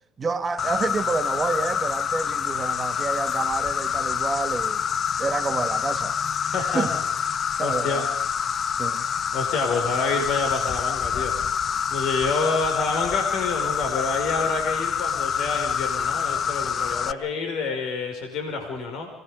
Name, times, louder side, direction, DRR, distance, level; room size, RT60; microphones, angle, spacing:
voice 1, 0.2-4.8 5.2-6.2 6.6-6.9 7.6-8.1 8.8-9.1, right 4 dB, 30° right, 1.7 m, -29 dB
Insect, 0.6-17.1, left 7 dB, 40° left, 0.8 m, -26 dB
voice 2, 6.4-6.9 7.6-8.1 9.3-11.4 11.9-19.1, left 4 dB, 60° left, 5.3 m, -28 dB
26.0 x 19.5 x 5.2 m
hypercardioid pair, 80°, 0 cm